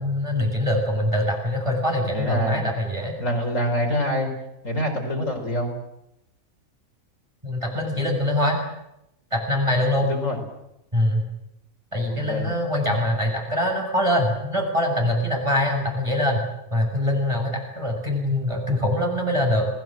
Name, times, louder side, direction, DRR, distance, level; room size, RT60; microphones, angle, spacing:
voice 1, 0.0-3.2 7.4-8.6 9.3-10.1 10.9-11.2 11.9-16.4 16.7-19.7, left 1 dB, 20° right, 1 dB, 6.9 m, -23 dB
voice 2, 2.1-2.6 3.2-4.3 4.6-5.7 10.0-10.4 12.0-12.5, equal, 60° left, 3 dB, 5.0 m, -25 dB
28.5 x 19.0 x 7.7 m, 0.84 s
omnidirectional pair, 1.5 m